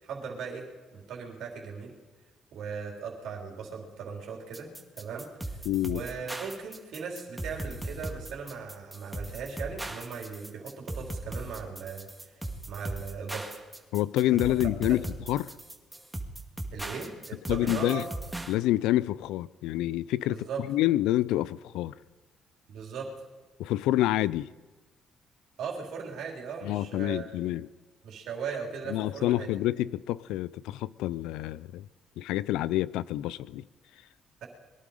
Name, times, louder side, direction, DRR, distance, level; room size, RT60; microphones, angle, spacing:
voice 1, 0.0-0.7 0.9-1.9 2.5-5.6 5.9-12.4 12.7-13.5 14.9-15.0 16.7-18.1 20.3-20.6 22.7-23.1 25.6-27.4 28.0-29.5 34.4-34.5, right 6 dB, 70° right, 3.5 m, -38 dB
sound 1, 4.5-18.5, right 1 dB, 10° right, 2.1 m, -38 dB
voice 2, 5.7-6.0 13.9-15.6 17.5-18.1 18.5-21.9 23.6-24.5 26.6-27.7 28.9-31.9 32.2-33.7, left 15 dB, 80° left, 0.4 m, -28 dB
22.5 x 11.5 x 5.0 m
supercardioid pair, 65°, 0 cm